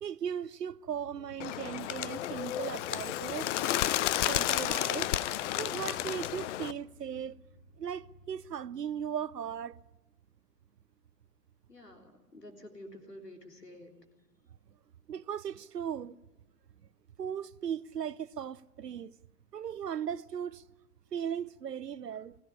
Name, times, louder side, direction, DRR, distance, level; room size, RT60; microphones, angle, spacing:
voice 1, 0.0-3.5 4.3-5.1 5.6-7.4 7.8-9.8 15.1-16.2 17.2-19.1 19.5-20.6 21.1-22.4, right 8 dB, 85° right, 0.7 m, -37 dB
sound 1, 0.8-8.9, equal, 70° left, 5.3 m, -58 dB
Bird, 1.4-6.7, left 13 dB, 50° left, 0.7 m, -32 dB
voice 2, 11.7-14.0, left 1 dB, 85° left, 3.7 m, -49 dB
21.5 x 16.0 x 9.9 m
figure-of-eight pair, 95°, 47 cm